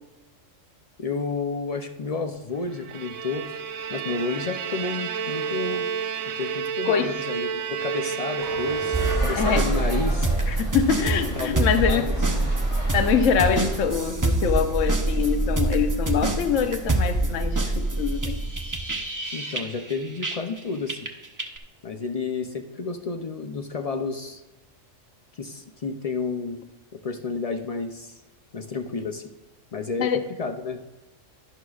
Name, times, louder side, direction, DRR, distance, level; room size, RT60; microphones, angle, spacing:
voice 1, 1.0-3.5 3.9-5.9 6.4-10.3 11.2-12.5 19.3-21.1 21.8-24.4 25.3-26.6 26.9-28.2 28.5-29.2 29.7-30.8, left 4 dB, 55° left, 5 dB, 0.4 m, -31 dB
Bowed string instrument, 2.7-9.7, right 7 dB, 75° right, 1.0 m, -30 dB
voice 2, 6.9-7.2 9.4-9.6 10.5-12.3 12.9-18.4 30.0-30.2, left 7 dB, 75° left, 8 dB, 1.1 m, -24 dB
sound 1, 8.4-13.8, equal, 30° left, 2.9 m, -36 dB
sound 2, 8.9-20.6 20.9-21.6, right 2 dB, 20° right, 0.5 m, -25 dB
11.0 x 11.0 x 2.4 m, 1.0 s
omnidirectional pair, 1.4 m